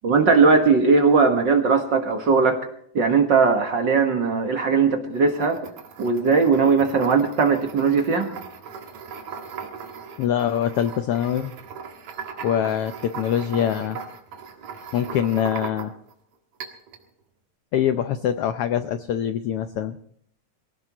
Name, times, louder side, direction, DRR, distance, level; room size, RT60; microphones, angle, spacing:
voice 1, 0.0-2.7 2.9-5.7 6.0-8.3, right 4 dB, 45° right, 4 dB, 1.8 m, -19 dB
sound 1, 5.1-16.1 16.6-17.0, right 6 dB, 70° right, 3.0 m, -38 dB
voice 2, 10.2-11.5 12.4-14.0 14.9-15.9 17.7-20.0, left 9 dB, 80° left, 9 dB, 1.3 m, -24 dB
23.5 x 17.5 x 3.0 m, 0.66 s
omnidirectional pair, 3.4 m